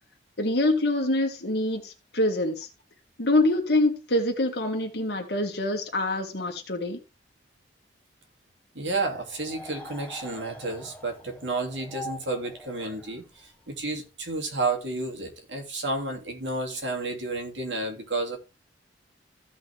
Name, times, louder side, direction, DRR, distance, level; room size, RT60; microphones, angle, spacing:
voice 1, 0.4-2.7 3.2-7.0, left 1 dB, 65° left, 2.0 m, -25 dB
voice 2, 8.7-18.4, right 2 dB, 80° right, 2.8 m, -31 dB
sound 1, 9.1-14.0, left 1 dB, 5° left, 1.4 m, -44 dB
15.5 x 5.3 x 3.6 m
head